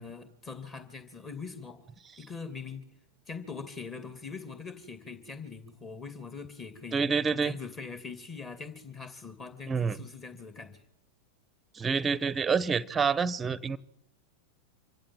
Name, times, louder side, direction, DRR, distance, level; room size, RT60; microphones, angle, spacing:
voice 1, 0.0-1.8 2.2-2.8 3.3-7.1 7.4-10.8, left 5 dB, 25° left, 9 dB, 2.6 m, -42 dB
voice 2, 6.9-7.5 9.7-10.0 11.7-13.8, right 5 dB, 15° right, 21 dB, 0.9 m, -27 dB
25.5 x 15.5 x 7.7 m, 0.87 s
figure-of-eight pair, 90°, 0 cm